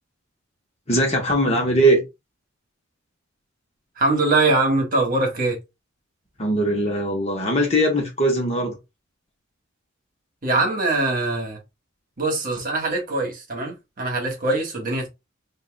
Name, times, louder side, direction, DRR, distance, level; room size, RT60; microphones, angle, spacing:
voice 1, 0.9-2.0 6.4-8.8, right 1 dB, 30° left, 1.3 m, -20 dB
voice 2, 4.0-5.6 10.4-11.6 12.2-15.1, right 2 dB, 40° right, 1.4 m, -22 dB
5.6 x 2.7 x 2.2 m
head